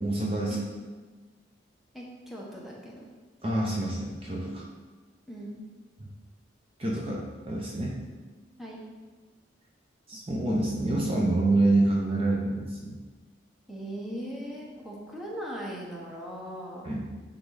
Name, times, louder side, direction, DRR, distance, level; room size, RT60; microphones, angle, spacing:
voice 1, 0.0-0.6 3.4-4.6 6.0-6.1 6.8-8.0 10.1-13.0 16.8-17.0, right 2 dB, 30° right, -3 dB, 0.8 m, -27 dB
voice 2, 1.9-3.1 5.3-5.6 8.6-8.8 13.7-16.9, equal, ahead, -4 dB, 1.1 m, -39 dB
9.5 x 3.8 x 4.0 m, 1.4 s
head